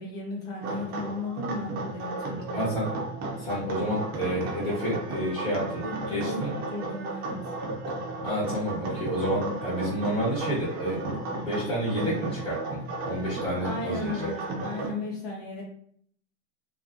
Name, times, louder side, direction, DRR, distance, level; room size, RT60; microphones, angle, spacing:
voice 1, 0.0-2.7 5.8-6.4 6.7-7.4 13.6-15.6, left 2 dB, 60° left, -4 dB, 1.1 m, -35 dB
sound 1, 0.6-14.9, right 2 dB, 25° right, 0.5 m, -34 dB
voice 2, 2.5-2.9 3.4-6.5 8.2-11.2 11.4-12.6 13.0-14.3, equal, 15° left, -8 dB, 1.3 m, -29 dB
2.6 x 2.4 x 2.4 m, 0.63 s
supercardioid pair, 140°, 35 cm